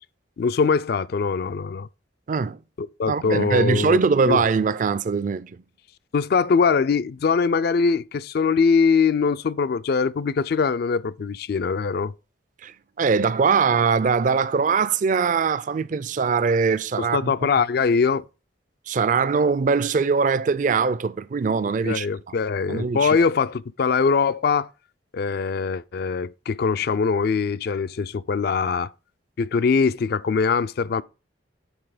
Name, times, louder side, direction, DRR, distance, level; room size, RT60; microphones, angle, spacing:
voice 1, 0.4-1.9 2.8-4.0 4.3-4.4 6.1-12.1 17.0-18.2 21.8-24.7 25.1-28.9 29.4-31.0, left 5 dB, 55° left, 0.4 m, -22 dB
voice 2, 2.3-2.6 3.1-5.6 12.6-17.3 18.9-22.4 22.7-23.2, right 5 dB, 45° right, 0.4 m, -22 dB
8.0 x 4.1 x 4.9 m
head